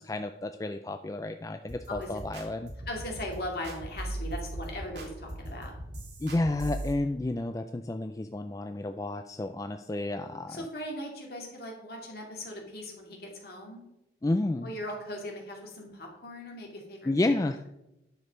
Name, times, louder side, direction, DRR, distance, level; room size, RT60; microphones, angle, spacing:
voice 1, 0.0-2.7 6.2-10.7 14.2-14.7 17.1-17.6, left 2 dB, 20° left, 8 dB, 0.3 m, -31 dB
sound 1, 1.7-6.9, right 1 dB, 65° right, 2.2 m, -39 dB
voice 2, 2.9-5.7 10.2-13.8 14.6-17.4, left 1 dB, 55° left, 0 dB, 2.4 m, -39 dB
9.7 x 6.2 x 5.2 m, 0.88 s
head